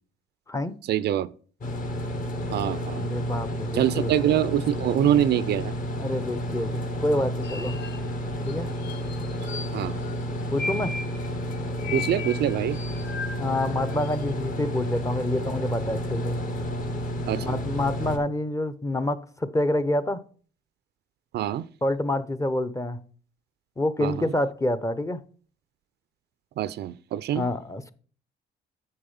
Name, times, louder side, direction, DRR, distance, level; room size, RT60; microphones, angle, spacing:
voice 1, 0.9-1.3 2.5-3.0 3.7-5.7 9.7-9.9 11.9-12.8 17.3-17.6 21.3-21.6 24.0-24.1 26.6-27.5, right 11 dB, 65° right, 0.5 m, -24 dB
sound 1, 1.6-18.2, equal, 45° left, 1.8 m, -31 dB
voice 2, 2.7-4.1 6.0-7.8 8.5-8.7 10.5-11.0 13.4-16.4 17.4-20.2 21.8-23.0 23.8-25.2 27.3-27.9, left 1 dB, 15° left, 0.7 m, -27 dB
sound 2, 7.4-8.1 8.5-8.6 8.8-10.2 10.4-14.3, left 4 dB, 65° left, 1.1 m, -36 dB
6.7 x 6.5 x 5.5 m
cardioid pair, 80°, 19 cm